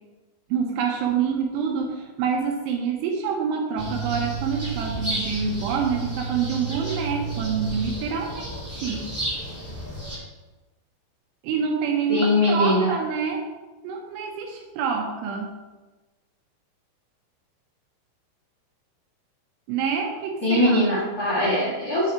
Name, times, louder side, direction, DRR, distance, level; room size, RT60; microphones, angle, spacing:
voice 1, 0.5-9.1 11.4-13.5 13.8-15.6 19.7-20.8, right 6 dB, 80° right, 2 dB, 2.7 m, -27 dB
sound 1, 3.8-10.2, right 3 dB, 10° right, 0.6 m, -31 dB
voice 2, 12.1-12.9 20.4-22.1, left 1 dB, 75° left, -8 dB, 0.8 m, -21 dB
8.4 x 4.7 x 4.3 m, 1.2 s
omnidirectional pair, 5.5 m